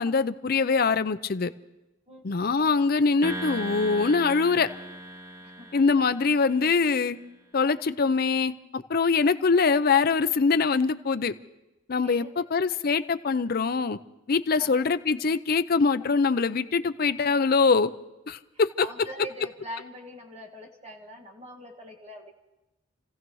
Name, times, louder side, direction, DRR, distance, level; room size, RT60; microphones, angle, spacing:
voice 1, 0.0-1.5 2.2-4.7 5.7-7.2 7.5-11.3 11.9-14.0 14.3-17.9 18.3-18.9, left 4 dB, 50° left, 12 dB, 0.5 m, -23 dB
voice 2, 2.1-2.4 5.4-5.8 12.0-12.4 14.6-14.7 18.8-22.3, equal, 35° right, 2 dB, 1.8 m, -43 dB
sound 1, 3.2-6.7, right 1 dB, 15° right, 0.9 m, -38 dB
29.5 x 15.5 x 3.1 m, 1.0 s
head